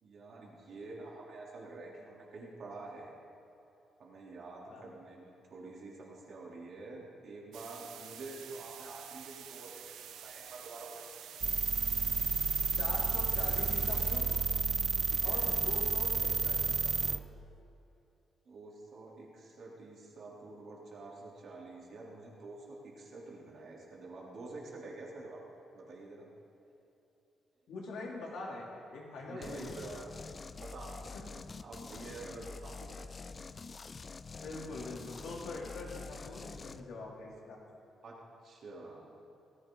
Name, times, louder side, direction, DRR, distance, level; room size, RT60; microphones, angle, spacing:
voice 1, 0.0-3.1 4.0-11.3 15.1-15.5 18.5-25.4 25.7-26.3 29.3-30.1 30.6-31.1 31.6-33.1 38.0-38.2 38.4-39.1, right 3 dB, 50° right, -3 dB, 3.3 m, -48 dB
sound 1, 7.5-14.2, right 9 dB, 85° right, 0.8 m, -49 dB
sound 2, 11.4-17.2, right 5 dB, 30° right, 0.4 m, -31 dB
voice 2, 12.7-14.4 15.2-17.2 27.7-29.8 31.1-31.2 34.4-37.6, left 2 dB, 70° left, -2 dB, 3.0 m, -43 dB
sound 3, 29.4-36.8, left 4 dB, 30° left, 0.4 m, -46 dB
18.0 x 14.5 x 3.9 m, 2.9 s
cardioid pair, 140°, 0 cm